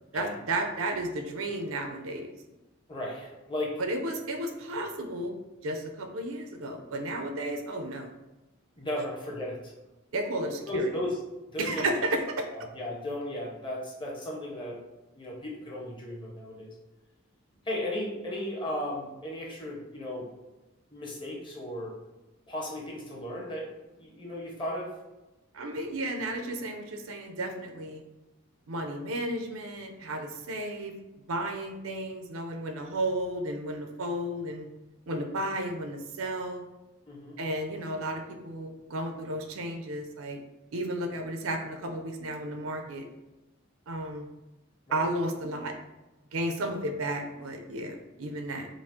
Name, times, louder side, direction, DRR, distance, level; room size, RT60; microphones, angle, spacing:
voice 1, 0.1-2.3 3.8-5.3 5.6-8.1 10.1-10.9 11.6-12.5 25.5-28.0 28.7-30.9 31.3-34.7 35.1-36.6 37.4-40.4 40.7-43.0 43.9-44.3 44.9-45.7 46.3-48.7, right 1 dB, 85° right, 5 dB, 0.6 m, -33 dB
voice 2, 2.9-3.8 8.8-9.7 10.4-11.2 11.5-11.9 12.5-14.8 15.2-16.7 17.6-20.3 20.9-21.9 22.5-23.7 24.0-25.0 37.1-37.4 44.9-45.0, left 1 dB, 25° left, -2 dB, 0.7 m, -35 dB
5.1 x 2.0 x 3.6 m, 1.0 s
head